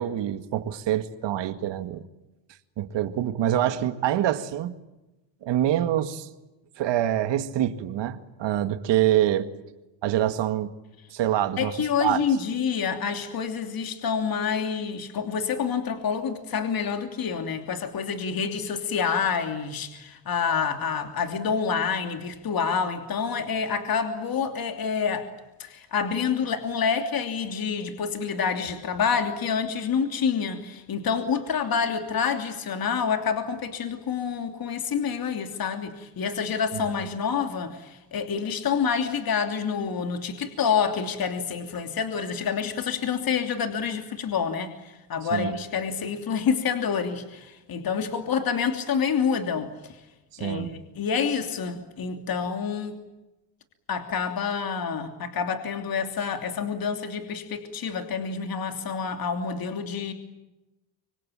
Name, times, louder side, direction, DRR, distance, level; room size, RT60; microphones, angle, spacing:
voice 1, 0.0-2.0 2.8-4.7 5.4-6.3 6.8-9.5 10.0-10.7 11.1-12.2 45.3-45.5 50.4-50.7, right 12 dB, 70° right, 2.1 m, -25 dB
voice 2, 11.6-25.3 25.6-50.0 50.4-53.0 53.9-60.1, left 6 dB, 50° left, 3.1 m, -28 dB
25.5 x 25.0 x 8.8 m
cardioid pair, 100°, 45 cm